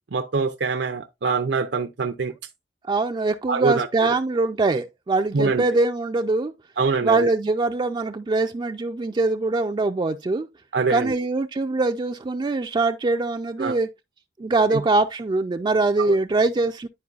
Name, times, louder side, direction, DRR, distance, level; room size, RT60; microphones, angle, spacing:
voice 1, 0.1-2.3 3.5-4.1 5.3-5.6 6.8-7.3 10.7-11.1 13.6-13.8 14.7-14.8 16.0-16.1, right 4 dB, 75° right, 0.6 m, -24 dB
voice 2, 2.9-6.5 7.0-10.5 10.9-13.9 14.4-16.9, right 3 dB, 25° right, 0.3 m, -23 dB
11.0 x 4.6 x 2.4 m
head